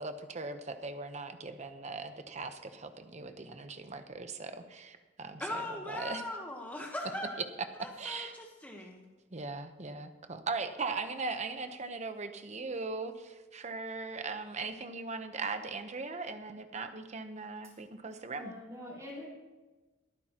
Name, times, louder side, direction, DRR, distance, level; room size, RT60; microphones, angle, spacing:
voice 1, 0.0-6.2 8.0-8.4 9.3-18.5, right 3 dB, 35° right, 8 dB, 0.9 m, -39 dB
voice 2, 5.4-7.4 7.8-9.0, left 1 dB, 10° left, 0 dB, 1.1 m, -40 dB
voice 3, 18.3-19.3, left 1 dB, 15° right, -7 dB, 4.2 m, -45 dB
23.5 x 9.2 x 3.0 m, 1.2 s
head